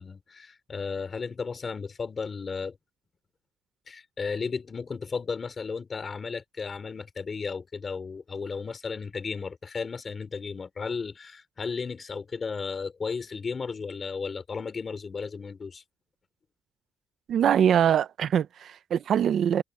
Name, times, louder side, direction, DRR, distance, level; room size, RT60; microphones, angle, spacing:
voice 1, 0.0-2.8 3.9-15.8, left 5 dB, 30° left, 4.2 m, -34 dB
voice 2, 17.3-19.6, right 9 dB, 55° right, 0.5 m, -23 dB
cardioid pair, 140°, 0 cm